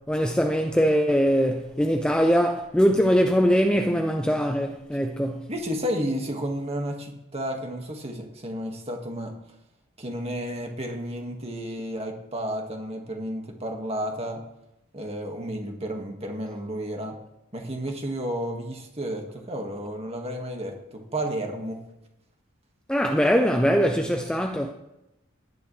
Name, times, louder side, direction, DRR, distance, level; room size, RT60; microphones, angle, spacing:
voice 1, 0.1-5.5 22.9-24.7, equal, 5° left, 0.5 m, -22 dB
voice 2, 5.5-9.4 10.0-14.4 14.9-17.2 17.5-21.8, equal, 30° right, 1.8 m, -32 dB
17.0 x 10.5 x 3.3 m
head